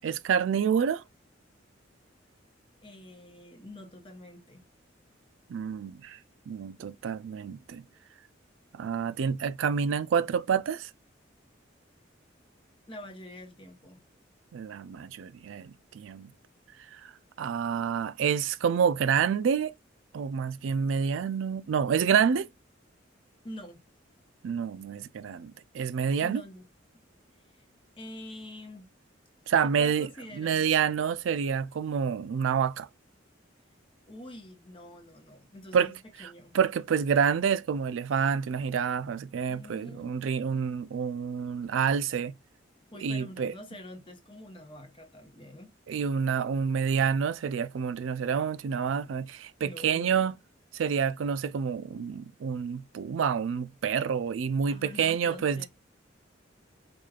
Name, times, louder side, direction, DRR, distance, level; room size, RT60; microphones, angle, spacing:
voice 1, 0.0-1.0 5.5-6.2 6.5-7.8 8.7-10.9 14.5-16.3 16.9-17.1 17.4-19.7 20.1-22.5 24.4-26.4 29.5-30.1 30.3-32.9 35.7-35.9 36.5-42.3 43.0-43.5 45.9-50.3 50.7-55.7, right 7 dB, 75° right, 0.3 m, -28 dB
voice 2, 2.8-4.6 12.9-14.0 23.4-23.8 26.2-26.6 27.5-27.6 28.0-28.9 29.6-30.7 34.1-36.6 39.5-40.1 42.9-45.7 49.6-50.3 54.7-55.7, left 1 dB, 25° left, 0.9 m, -46 dB
4.8 x 2.4 x 2.3 m
head